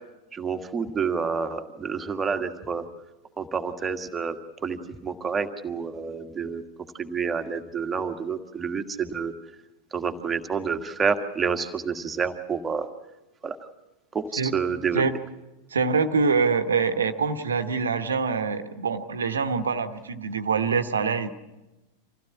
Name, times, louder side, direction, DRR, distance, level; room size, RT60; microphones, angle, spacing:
voice 1, 0.3-2.8 3.4-4.4 4.6-6.6 7.0-9.3 9.9-12.9 13.4-13.6 14.1-15.0, right 5 dB, 15° right, 6 dB, 1.7 m, -28 dB
voice 2, 15.7-21.3, right 5 dB, 70° right, 10 dB, 1.2 m, -25 dB
26.0 x 15.5 x 8.5 m, 1.1 s
figure-of-eight pair, 90°, 0 cm